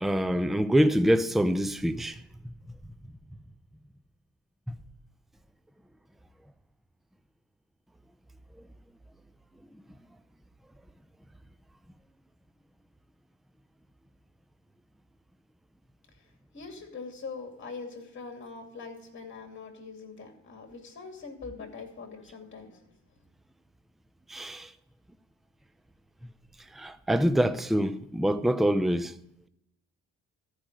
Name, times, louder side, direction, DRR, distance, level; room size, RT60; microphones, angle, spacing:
voice 1, 0.0-2.2 24.3-24.7 26.8-29.1, equal, ahead, 0.5 m, -25 dB
voice 2, 16.5-22.8 23.1-23.2, left 4 dB, 40° left, 2.6 m, -43 dB
14.0 x 5.0 x 8.8 m
cardioid pair, 90°, 30 cm